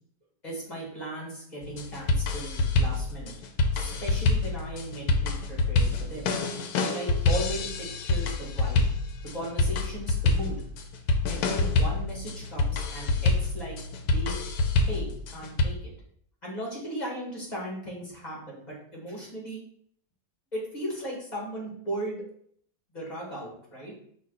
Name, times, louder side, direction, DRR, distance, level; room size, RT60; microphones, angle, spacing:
voice 1, 0.4-3.3 3.7-6.3 6.8-8.9 9.3-10.6 11.3-14.4 14.8-15.9 16.4-19.6 20.5-22.2 22.9-23.9, right 1 dB, 30° left, -4 dB, 2.0 m, -37 dB
sound 1, 1.6-15.7, left 3 dB, 90° left, 1.1 m, -26 dB
5.2 x 2.6 x 3.9 m, 0.64 s
omnidirectional pair, 1.5 m